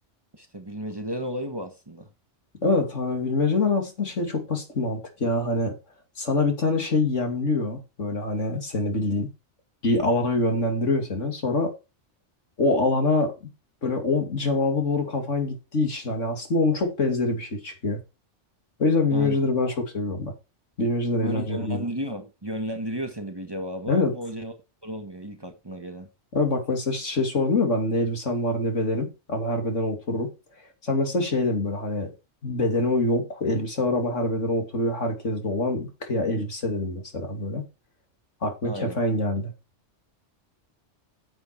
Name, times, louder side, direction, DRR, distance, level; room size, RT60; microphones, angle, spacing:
voice 1, 0.3-2.1 19.1-19.4 19.7-19.8 21.2-24.5 24.8-26.1 38.6-39.0, equal, 20° right, 1.5 m, -33 dB
voice 2, 2.6-5.7 6.2-9.3 9.8-11.7 12.6-13.3 13.8-18.0 18.8-20.3 20.8-21.8 23.9-24.1 26.3-30.3 30.8-32.1 32.4-37.6 38.4-39.5, left 2 dB, 85° left, 3.0 m, -25 dB
9.5 x 8.0 x 4.6 m
omnidirectional pair, 1.2 m